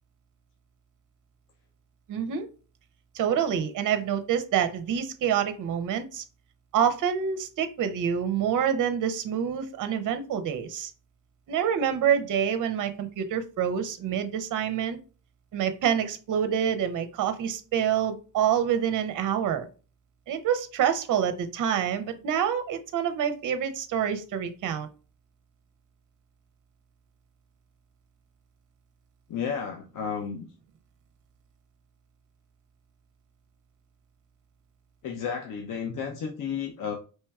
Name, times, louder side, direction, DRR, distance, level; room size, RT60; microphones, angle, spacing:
voice 1, 2.1-2.5 3.1-6.2 6.7-10.9 11.5-15.0 15.5-19.7 20.3-24.9, right 8 dB, 50° right, 10 dB, 0.6 m, -27 dB
voice 2, 29.3-30.5 35.0-36.9, left 7 dB, 50° left, 2 dB, 0.5 m, -32 dB
4.4 x 3.1 x 2.3 m, 0.35 s
cardioid pair, 150°, 41 cm